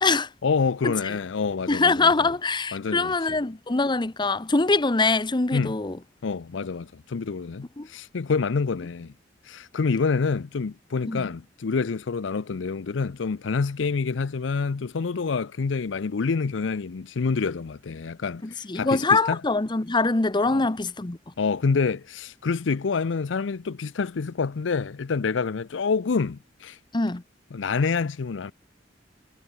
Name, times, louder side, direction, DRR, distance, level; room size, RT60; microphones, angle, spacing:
voice 1, 0.4-2.1 2.7-3.1 5.5-5.8 6.2-9.1 9.5-19.4 20.5-20.6 21.4-26.8 27.5-28.5, left 5 dB, 75° left, 0.5 m, -27 dB
voice 2, 1.7-6.0 7.8-7.9 11.1-11.3 18.4-21.2 26.9-27.2, left 3 dB, 25° left, 0.8 m, -23 dB
head